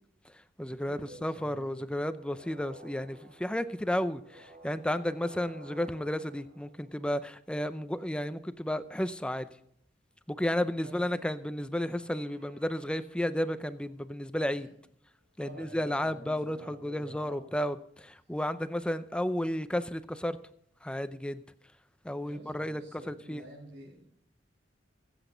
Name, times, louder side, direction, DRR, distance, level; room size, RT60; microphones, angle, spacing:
voice 1, 0.2-9.5 10.3-14.7 15.4-20.4 20.8-21.4 22.0-23.4, left 1 dB, 5° left, 13 dB, 0.6 m, -33 dB
voice 2, 0.9-1.9 10.8-11.2 15.4-17.5 22.2-24.0, right 1 dB, 70° right, -6 dB, 5.3 m, -49 dB
sound 1, 2.1-7.4 11.8-13.4, right 2 dB, 50° right, 4.8 m, -54 dB
23.5 x 8.1 x 3.9 m, 0.67 s
head